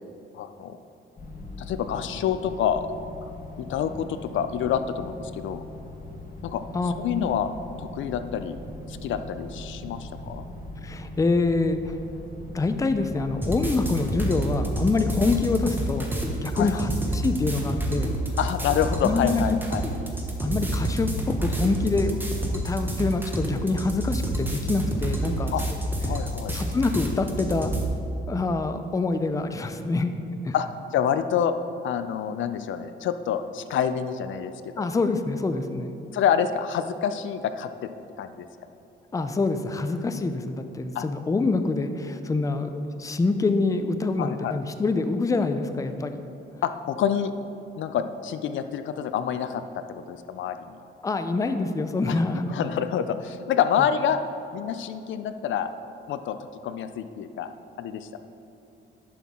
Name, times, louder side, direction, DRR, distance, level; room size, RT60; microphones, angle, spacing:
voice 1, 0.3-0.8 1.6-2.9 3.2-3.3 3.6-5.6 6.4-6.6 7.0-7.5 7.8-8.6 8.9-10.4 16.5-16.8 18.4-19.8 25.5-25.6 26.0-26.6 30.5-30.7 30.9-31.5 31.8-34.9 36.1-37.9 38.2-38.5 40.9-41.1 44.2-44.5 46.6-47.3 47.8-49.6 49.9-50.8 52.1-52.2 52.5-54.2 54.5-55.7 56.1-56.4 56.6-57.5 57.8-58.1, left 8 dB, 70° left, 10 dB, 0.4 m, -27 dB
sound 1, 1.2-16.3, left 1 dB, 45° left, 1.3 m, -40 dB
voice 2, 10.8-12.0 12.5-16.1 16.4-18.1 19.0-19.6 20.4-22.2 22.5-25.5 26.5-27.7 28.3-30.1 30.4-30.5 34.8-35.9 39.1-46.2 51.0-52.6, left 3 dB, 15° left, 8 dB, 0.4 m, -26 dB
sound 2, 13.4-27.8, right 1 dB, 10° right, 1.1 m, -29 dB
11.0 x 5.9 x 3.7 m, 2.9 s
cardioid pair, 105°, 20 cm